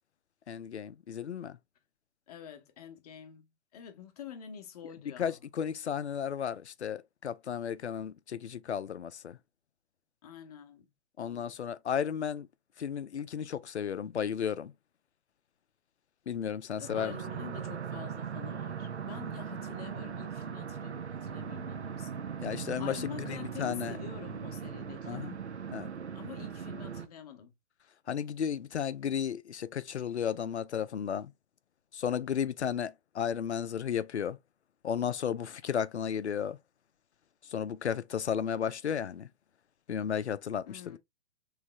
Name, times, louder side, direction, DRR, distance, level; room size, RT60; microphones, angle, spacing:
voice 1, 0.5-1.6 5.2-9.4 11.2-12.5 12.8-14.7 16.3-17.2 22.4-24.0 25.1-25.4 25.7-25.9 28.1-31.3 31.9-34.4 34.8-36.6 37.5-39.3 39.9-41.0, left 8 dB, 75° left, 0.5 m, -34 dB
voice 2, 2.3-5.4 10.2-10.9 11.2-11.5 16.8-22.3 22.5-25.3 26.1-27.5 40.7-41.0, left 9 dB, 35° left, 0.8 m, -47 dB
sound 1, 16.8-27.1, right 7 dB, 75° right, 0.7 m, -39 dB
3.6 x 3.2 x 2.9 m
figure-of-eight pair, 125°, 34 cm